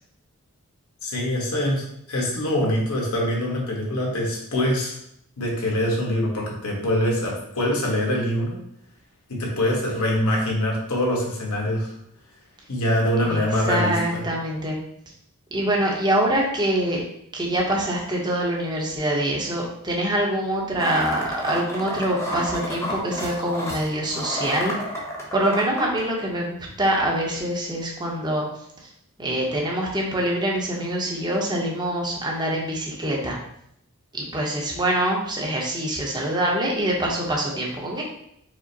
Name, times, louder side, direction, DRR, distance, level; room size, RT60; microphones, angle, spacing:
voice 1, 1.0-5.0 5.4-8.6 9.3-11.9 12.7-14.2, left 1 dB, 75° left, -2 dB, 1.2 m, -24 dB
voice 2, 13.2-14.8 15.5-17.0 17.3-24.8 25.3-28.5 29.2-33.4 34.1-38.0, right 1 dB, 20° right, -2 dB, 0.8 m, -25 dB
sound 1, 20.8-26.0, left 1 dB, 15° left, 0.8 m, -31 dB
5.0 x 2.0 x 4.0 m, 0.73 s
head